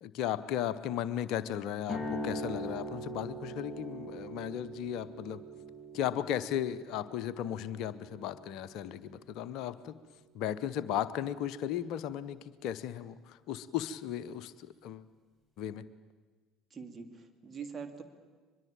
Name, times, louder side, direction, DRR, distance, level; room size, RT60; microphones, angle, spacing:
voice 1, 0.0-5.4 5.9-10.0 10.3-14.5 14.8-15.0 15.6-15.8, left 10 dB, 55° left, 14 dB, 0.8 m, -35 dB
sound 1, 1.8-9.9, right 1 dB, 10° right, 5.5 m, -42 dB
voice 2, 16.7-18.0, right 6 dB, 30° right, 6 dB, 2.7 m, -43 dB
23.0 x 21.5 x 9.0 m, 1.4 s
figure-of-eight pair, 60°, 0 cm